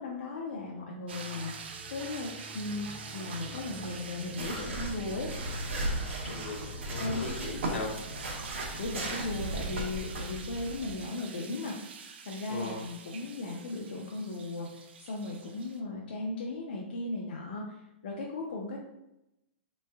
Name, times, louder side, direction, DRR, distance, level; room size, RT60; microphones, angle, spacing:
voice 1, 0.0-5.3 7.0-7.2 8.8-11.8 12.3-18.8, left 2 dB, 55° left, -2 dB, 0.4 m, -37 dB
sound 1, 1.1-11.3, right 2 dB, 5° left, 0.6 m, -52 dB
sound 2, 1.1-15.8, right 5 dB, 60° right, 0.4 m, -46 dB
sound 3, 4.4-10.9, right 1 dB, 80° right, 0.8 m, -36 dB
voice 2, 6.2-7.9 12.5-12.8, left 3 dB, 80° left, -1 dB, 1.0 m, -38 dB
3.4 x 3.1 x 2.2 m, 0.89 s
hypercardioid pair, 175°, 6 cm